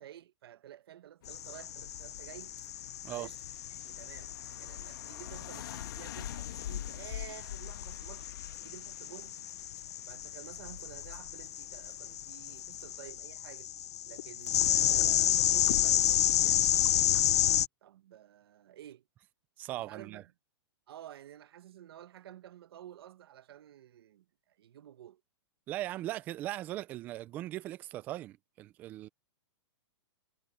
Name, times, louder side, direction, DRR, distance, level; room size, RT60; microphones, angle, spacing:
voice 1, 0.0-2.5 3.1-3.4 3.7-4.3 4.6-8.3 8.6-9.5 10.1-13.7 14.1-17.2 17.8-19.0 19.7-20.3 20.9-25.2, right 11 dB, 55° right, 1.2 m, -51 dB
sound 1, 1.2-13.1, left 13 dB, 50° left, 1.3 m, -52 dB
sound 2, 1.3-17.7, left 11 dB, 70° left, 0.5 m, -31 dB
voice 2, 19.6-20.2 25.7-29.1, right 15 dB, 10° right, 0.3 m, -39 dB
hypercardioid pair, 170°, 15 cm